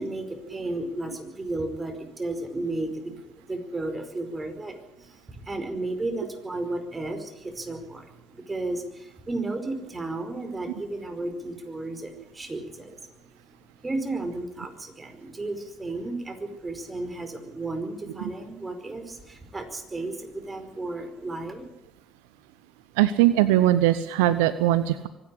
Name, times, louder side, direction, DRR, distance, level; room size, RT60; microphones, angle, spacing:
voice 1, 0.0-13.1 13.8-21.7, right 2 dB, 25° right, 7 dB, 5.0 m, -33 dB
voice 2, 23.0-25.1, right 13 dB, 80° right, 14 dB, 0.8 m, -20 dB
24.0 x 11.0 x 9.9 m, 0.87 s
hypercardioid pair, 60°, 0 cm